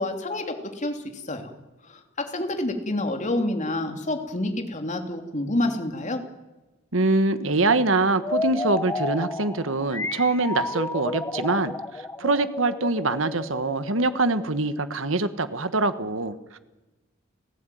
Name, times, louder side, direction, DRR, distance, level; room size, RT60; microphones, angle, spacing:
voice 1, 0.0-1.5 1.9-6.2, left 1 dB, 35° left, 5 dB, 3.0 m, -28 dB
voice 2, 6.9-16.6, right 3 dB, 70° right, 12 dB, 1.5 m, -24 dB
sound 1, 8.2-14.9, left 2 dB, 15° left, 0.9 m, -32 dB
30.0 x 15.5 x 9.3 m, 1.1 s
head